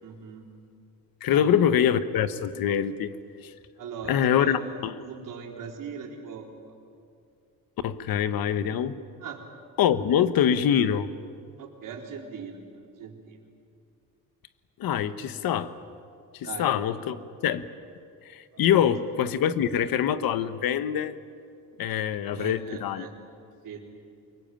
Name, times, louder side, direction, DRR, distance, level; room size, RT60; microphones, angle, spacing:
voice 1, 0.0-0.4 1.3-1.5 3.8-4.6 5.0-6.5 9.2-9.4 11.6-12.6 13.0-13.4 16.4-16.7 18.7-18.9 22.3-23.1 23.6-23.8, right 6 dB, 65° right, 1 dB, 4.0 m, -40 dB
voice 2, 1.2-3.1 3.4-3.5 4.1-5.0 7.8-9.0 9.8-11.1 14.8-15.7 16.3-17.2 17.4-17.7 18.2-21.1 21.8-23.1, left 9 dB, 80° left, 12 dB, 1.2 m, -24 dB
24.5 x 22.0 x 9.1 m, 2.4 s
cardioid pair, 140°, 35 cm